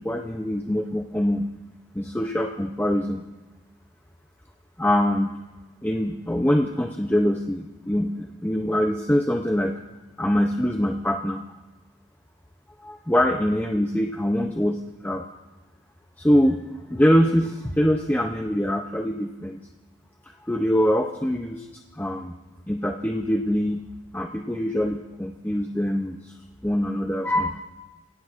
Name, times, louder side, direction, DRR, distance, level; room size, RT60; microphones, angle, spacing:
voice 1, 0.0-1.5 1.9-3.2 4.8-5.4 5.8-9.8 10.2-11.4 12.8-15.3 16.2-16.6 16.9-19.6 20.5-21.7 21.9-22.3 22.7-23.8 24.1-26.3 26.6-27.6, equal, 10° left, 2 dB, 0.6 m, -24 dB
24.0 x 17.0 x 2.5 m, 1.1 s
head